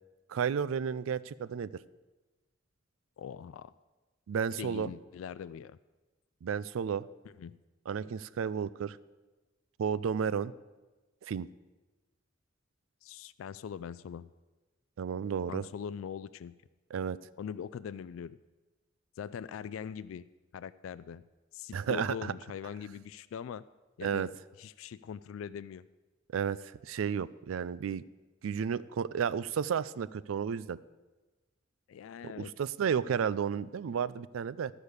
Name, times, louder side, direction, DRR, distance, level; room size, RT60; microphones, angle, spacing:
voice 1, 0.3-1.7 4.3-4.9 6.4-7.0 7.9-9.0 9.8-10.5 11.3-11.5 15.0-15.7 16.9-17.2 21.7-22.3 24.0-24.3 26.3-28.0 28.4-30.8 32.4-34.7, right 7 dB, 90° right, 18 dB, 0.4 m, -32 dB
voice 2, 3.2-3.7 4.6-5.8 7.2-7.6 13.0-14.3 15.5-16.5 17.4-18.4 19.2-20.3 20.5-21.2 21.5-23.6 24.0-24.3 24.6-25.8 31.9-32.5, left 7 dB, 85° left, 15 dB, 0.3 m, -42 dB
13.0 x 5.1 x 8.0 m, 1.2 s
head